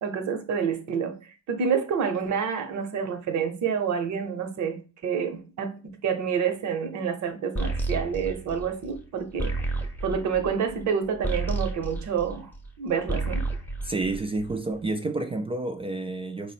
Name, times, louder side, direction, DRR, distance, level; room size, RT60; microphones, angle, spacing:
voice 1, 0.0-5.7 6.0-9.5 10.0-12.5 12.8-13.4, right 6 dB, 70° right, 0.8 m, -28 dB
sound 1, 7.6-12.7 13.0-14.8, right 2 dB, 5° left, 0.7 m, -31 dB
voice 2, 13.8-16.5, right 2 dB, 20° right, 0.3 m, -29 dB
4.4 x 2.1 x 4.2 m
cardioid pair, 90°, 30 cm